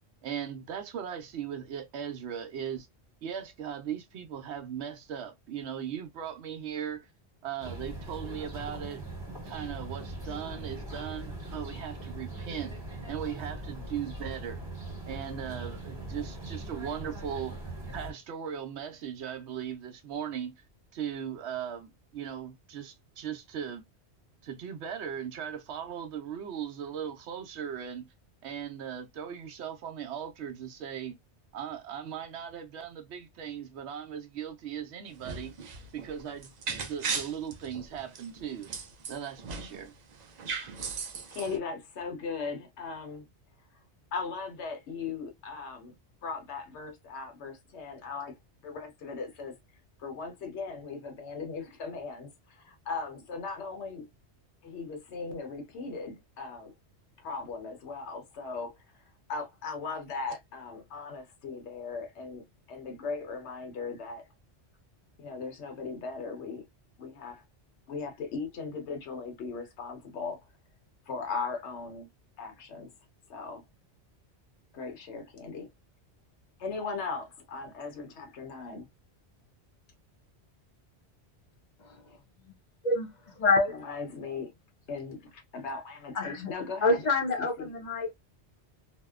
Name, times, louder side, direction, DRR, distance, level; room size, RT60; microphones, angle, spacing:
voice 1, 0.2-2.9 3.2-7.1 7.4-12.7 13.1-14.6 15.0-20.5 20.9-23.8 24.4-28.1 28.4-31.2 31.5-35.5 35.9-36.5 36.8-38.7 39.1-39.9, right 8 dB, 75° right, 0.8 m, -38 dB
sound 1, 7.6-18.1, right 2 dB, 25° right, 1.2 m, -40 dB
sound 2, 35.1-39.9 40.1-41.6, right 5 dB, 55° right, 0.5 m, -37 dB
voice 2, 41.3-43.3 44.1-45.9 46.2-48.3 48.6-49.5 50.0-54.0 54.6-56.7 57.2-59.0 59.3-64.2 65.2-66.6 67.0-67.4 67.9-70.4 71.1-72.1 72.4-72.9 73.3-73.6 74.7-75.7 76.6-78.9 83.7-84.5 84.9-87.1 87.4-87.7, left 4 dB, 80° left, 1.0 m, -38 dB
voice 3, 82.8-83.9 86.1-86.5 86.8-88.1, left 3 dB, 50° left, 0.6 m, -27 dB
2.7 x 2.1 x 2.3 m
omnidirectional pair, 1.2 m